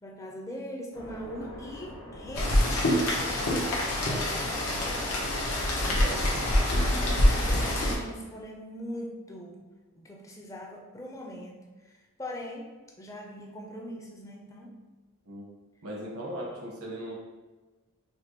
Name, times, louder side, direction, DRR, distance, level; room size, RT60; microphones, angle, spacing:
voice 1, 0.0-5.0 5.8-6.1 6.4-9.6 9.9-14.8, equal, 15° left, 0 dB, 0.4 m, -42 dB
sound 1, 0.9-7.8, left 1 dB, 50° left, 0.9 m, -44 dB
Rain, 2.3-7.9, left 1 dB, 80° left, 0.9 m, -25 dB
voice 2, 5.9-6.3 15.3-15.4 15.8-17.1, right 1 dB, 80° right, -3 dB, 1.0 m, -38 dB
5.2 x 2.2 x 2.9 m, 1.2 s
head